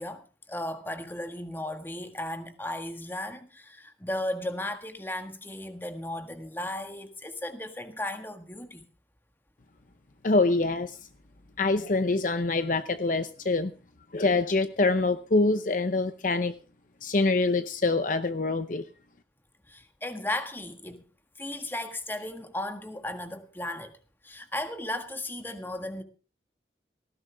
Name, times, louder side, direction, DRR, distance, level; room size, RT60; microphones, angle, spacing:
voice 1, 0.0-8.9 19.7-21.0 21.4-23.9 24.2-26.0, left 1 dB, 10° left, 1.6 m, -35 dB
voice 2, 10.2-11.0 11.6-13.7 14.1-16.6 17.0-18.8, left 3 dB, 45° left, 0.7 m, -25 dB
18.5 x 15.0 x 3.4 m
head